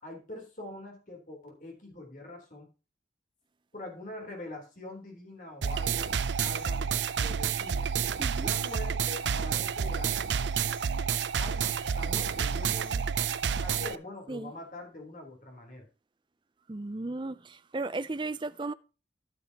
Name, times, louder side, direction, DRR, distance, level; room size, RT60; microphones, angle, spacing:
voice 1, 0.0-2.7 3.7-7.9 8.4-10.5 10.9-13.1 13.6-15.9, left 2 dB, 45° left, 3.6 m, -44 dB
sound 1, 5.6-14.0, right 7 dB, 80° right, 0.5 m, -29 dB
voice 2, 16.7-18.7, right 2 dB, 25° right, 0.5 m, -35 dB
11.5 x 9.2 x 2.9 m
head